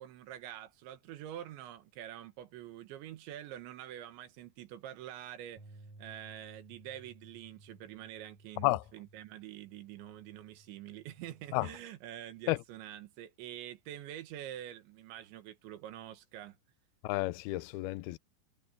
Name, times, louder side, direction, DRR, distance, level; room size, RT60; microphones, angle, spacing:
voice 1, 0.0-5.6 6.0-16.6, right 12 dB, 80° right, 3.7 m, -46 dB
sound 1, 5.6-11.8, right 2 dB, 35° right, 8.3 m, -58 dB
voice 2, 17.0-18.2, left 20 dB, 90° left, 2.1 m, -31 dB
omnidirectional pair, 5.2 m